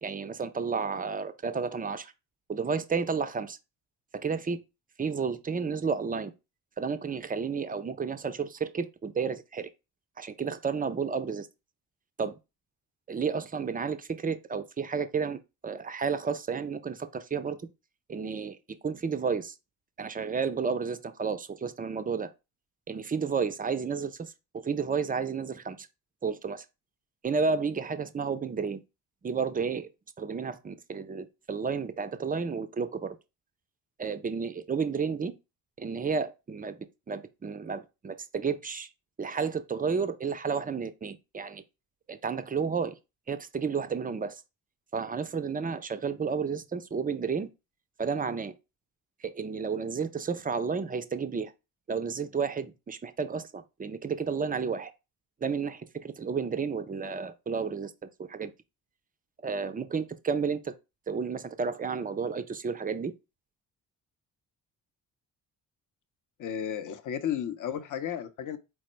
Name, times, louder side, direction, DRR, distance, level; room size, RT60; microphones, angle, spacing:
voice 1, 0.0-2.1 2.5-3.6 4.1-4.6 5.0-6.3 6.8-9.7 10.2-11.5 12.2-12.4 13.1-17.6 18.1-19.5 20.0-22.3 22.9-25.9 26.2-26.6 27.2-28.8 29.2-29.9 30.2-33.1 34.0-35.3 35.8-36.8 37.1-38.9 39.2-41.6 42.1-43.0 43.3-44.4 44.9-47.5 48.0-48.5 49.2-51.5 51.9-54.9 55.4-58.5 59.4-60.7 61.1-63.1, right 5 dB, 20° right, 0.5 m, -31 dB
voice 2, 66.4-68.6, left 9 dB, 40° left, 0.7 m, -33 dB
4.4 x 2.0 x 4.3 m
hypercardioid pair, 45°, 48 cm